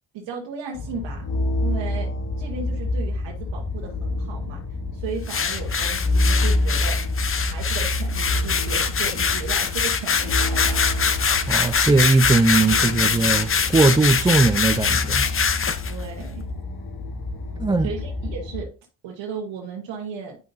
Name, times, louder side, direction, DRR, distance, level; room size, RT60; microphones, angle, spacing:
voice 1, 0.1-1.3 1.6-2.1 2.4-4.6 4.9-7.0 7.5-10.8 15.9-16.4 17.8-18.7 19.0-20.4, right 5 dB, 90° right, 1.2 m, -35 dB
sound 1, 0.7-18.6, left 2 dB, 60° left, 1.4 m, -27 dB
sound 2, 5.3-15.9, left 6 dB, 30° left, 0.7 m, -23 dB
voice 2, 11.5-15.3 17.6-17.9, right 3 dB, 10° right, 0.3 m, -19 dB
9.5 x 5.5 x 2.6 m
cardioid pair, 75°, 43 cm